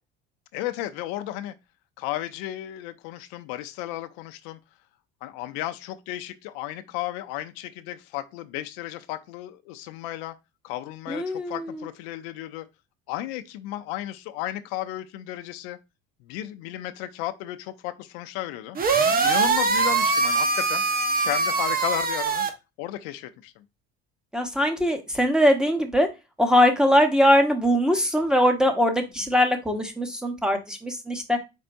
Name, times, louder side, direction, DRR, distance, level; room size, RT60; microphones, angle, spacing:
voice 1, 0.5-1.5 2.0-4.6 5.2-10.3 10.6-12.7 13.1-15.8 16.2-18.8 19.2-20.8 21.2-22.5 22.8-23.6, left 14 dB, 85° left, 0.6 m, -33 dB
voice 2, 11.1-11.6 24.3-26.1 26.4-31.4, equal, ahead, 1.0 m, -21 dB
sound 1, 18.8-22.5, right 4 dB, 30° right, 0.9 m, -22 dB
4.6 x 4.2 x 2.5 m
supercardioid pair, 100°, 30 cm